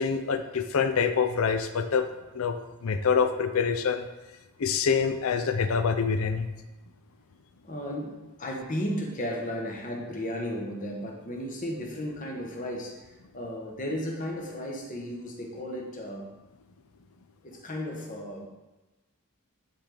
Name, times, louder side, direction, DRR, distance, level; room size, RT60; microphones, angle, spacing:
voice 1, 0.0-2.0 2.3-2.6 2.8-4.0 4.6-6.5, left 6 dB, 65° left, 8 dB, 0.5 m, -25 dB
voice 2, 7.6-16.3 17.4-18.5, equal, 35° left, 0 dB, 1.1 m, -34 dB
10.0 x 3.4 x 3.8 m, 1.1 s
head